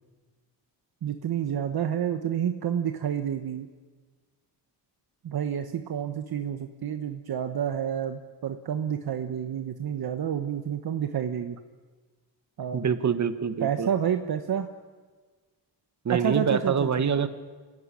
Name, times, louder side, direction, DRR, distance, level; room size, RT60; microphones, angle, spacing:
voice 1, 1.0-3.7 5.2-11.6 12.6-12.8 13.6-14.7 16.2-16.9, right 8 dB, 60° right, 7 dB, 1.3 m, -29 dB
voice 2, 12.7-13.9 16.0-17.3, right 7 dB, 40° right, 11 dB, 1.4 m, -25 dB
27.0 x 16.0 x 10.0 m, 1.4 s
wide cardioid pair, 135°, 42 cm